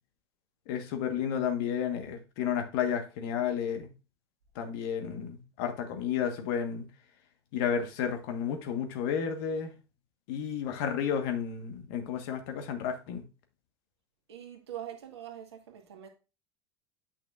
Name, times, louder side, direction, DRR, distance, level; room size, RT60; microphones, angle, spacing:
voice 1, 0.7-3.9 4.5-6.9 7.5-9.7 10.3-13.2, left 8 dB, 60° left, 1.3 m, -32 dB
voice 2, 14.3-16.1, right 10 dB, 75° right, 1.6 m, -43 dB
8.7 x 5.9 x 2.4 m
figure-of-eight pair, 75°, 14 cm